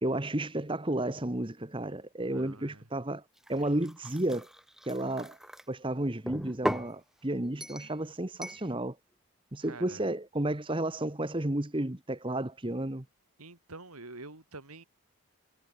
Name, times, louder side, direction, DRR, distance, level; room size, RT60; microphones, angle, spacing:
voice 1, 0.0-3.2 3.5-4.5 4.8-5.4 5.7-9.0 9.5-13.0, right 1 dB, 25° right, 1.2 m, -32 dB
voice 2, 2.3-2.9 9.6-10.1 13.4-14.8, right 3 dB, 85° right, 3.8 m, -47 dB
sound 1, 3.4-5.6 6.3-6.9 7.6-7.9 8.4-8.6, equal, ahead, 1.5 m, -37 dB
head